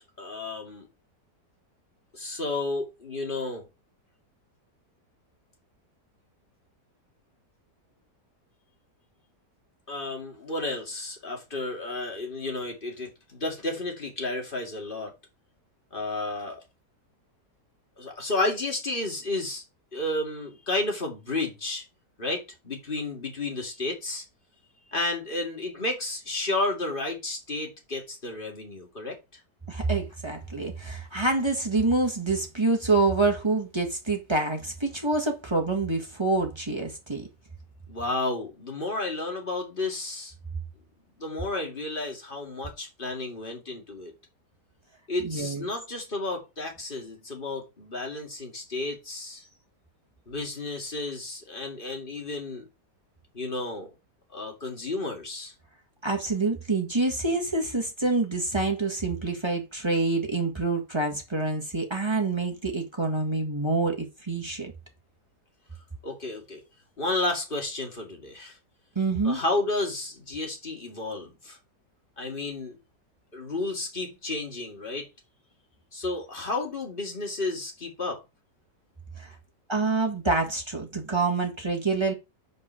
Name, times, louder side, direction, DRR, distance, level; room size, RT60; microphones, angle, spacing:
voice 1, 0.2-0.9 2.1-3.7 9.9-15.1 15.9-16.6 18.0-19.6 19.9-21.8 22.2-24.2 24.9-29.2 37.9-40.3 41.2-44.1 45.1-49.4 50.3-52.7 53.3-53.9 54.3-55.5 66.0-66.6 67.0-68.6 69.2-71.6 72.2-72.8 73.3-75.1 75.9-78.2, left 2 dB, 30° left, 2.4 m, -32 dB
voice 2, 29.7-37.3 45.2-45.6 56.0-64.7 68.9-69.4 79.2-79.3 79.7-82.1, right 3 dB, 15° right, 1.5 m, -26 dB
5.2 x 5.2 x 6.3 m
omnidirectional pair, 1.8 m